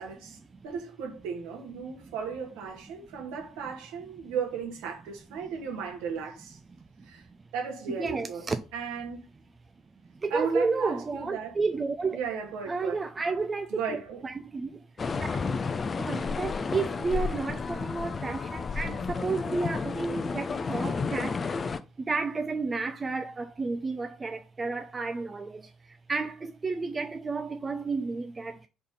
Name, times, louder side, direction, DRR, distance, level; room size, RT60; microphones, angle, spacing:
voice 1, 0.0-6.6 7.0-7.2 7.5-9.2 10.3-11.5 12.1-13.0 13.7-14.2, right 6 dB, 70° right, 1.8 m, -36 dB
voice 2, 7.9-8.6 10.2-12.2 12.7-14.7 15.2-15.4 16.0-21.3 22.1-25.6 26.1-28.5, right 4 dB, 30° right, 0.6 m, -31 dB
sound 1, 15.0-21.8, left 5 dB, 35° left, 0.6 m, -31 dB
5.0 x 4.3 x 5.5 m
figure-of-eight pair, 50°, 0 cm